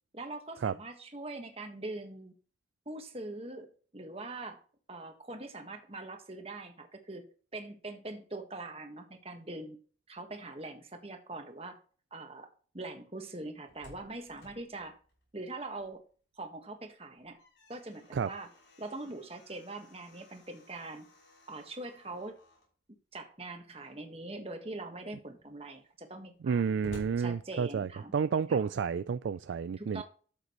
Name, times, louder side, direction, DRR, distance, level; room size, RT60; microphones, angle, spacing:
voice 1, 0.1-2.3 2.8-4.6 4.9-7.2 7.5-9.8 10.1-11.8 12.1-12.5 12.7-15.0 15.3-16.0 16.4-17.4 17.7-18.5 18.8-21.1 21.5-22.3 23.1-26.7 27.2-28.1 28.5-28.7 29.8-30.0, right 2 dB, 30° right, 1.4 m, -43 dB
Slam, 13.5-16.2 16.5-16.6 17.1-22.7 23.6-24.2 24.7-24.8 25.0-28.1, equal, 75° left, 5.8 m, -55 dB
voice 2, 26.4-30.0, right 6 dB, 75° right, 0.3 m, -30 dB
12.0 x 7.7 x 3.1 m
head